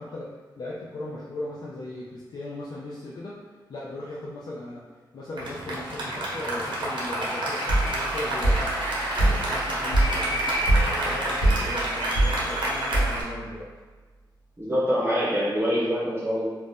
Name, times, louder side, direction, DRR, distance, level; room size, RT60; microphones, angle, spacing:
voice 1, 0.0-3.4 3.7-4.8 5.1-8.6 9.2-10.5 10.8-13.7, left 1 dB, 55° left, -5 dB, 0.4 m, -37 dB
Applause, 5.4-13.2, right 1 dB, 85° right, 0.7 m, -28 dB
sound 1, 7.7-13.5, right 1 dB, 70° left, 1.0 m, -25 dB
voice 2, 14.6-16.4, equal, 25° right, -8 dB, 0.6 m, -25 dB
2.5 x 2.1 x 3.4 m, 1.4 s
wide cardioid pair, 115°, 8 cm